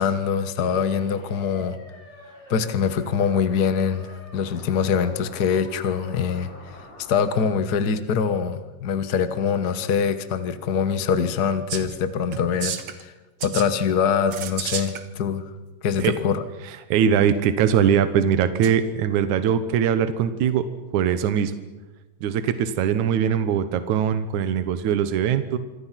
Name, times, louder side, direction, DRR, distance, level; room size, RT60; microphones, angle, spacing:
voice 1, 0.0-1.8 2.5-6.8 7.1-13.1 13.4-15.4 15.8-16.4, left 7 dB, 65° left, 10 dB, 0.9 m, -24 dB
sound 1, 0.6-7.5, left 1 dB, 20° left, 5.9 m, -45 dB
sound 2, 11.7-12.0 12.3-13.0 13.4-13.7 14.3-15.0 16.0-16.1 18.6-18.7, right 8 dB, 50° right, 2.0 m, -31 dB
voice 2, 16.9-20.6 20.9-21.5 22.2-25.6, right 8 dB, 70° right, 11 dB, 2.5 m, -21 dB
26.5 x 26.0 x 5.9 m, 1.1 s
omnidirectional pair, 3.6 m